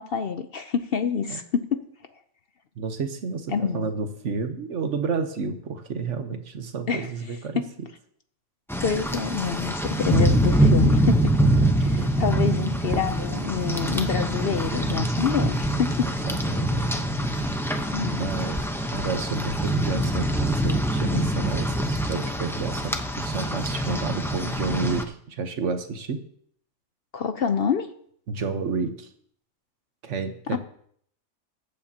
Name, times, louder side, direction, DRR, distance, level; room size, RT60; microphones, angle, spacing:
voice 1, 0.0-1.9 3.5-3.9 6.9-7.1 7.6-7.7 8.8-11.4 11.8-16.1 17.9-18.3 27.1-27.9 30.5-30.6, left 6 dB, 55° left, 9 dB, 0.8 m, -27 dB
voice 2, 2.8-7.6 11.4-12.1 13.8-14.0 16.0-16.9 18.1-26.2 28.3-29.1 30.0-30.6, right 4 dB, 65° right, 8 dB, 1.3 m, -31 dB
Rain, 8.7-25.0, right 1 dB, ahead, 0.6 m, -24 dB
21.5 x 8.6 x 2.9 m, 0.64 s
omnidirectional pair, 1.4 m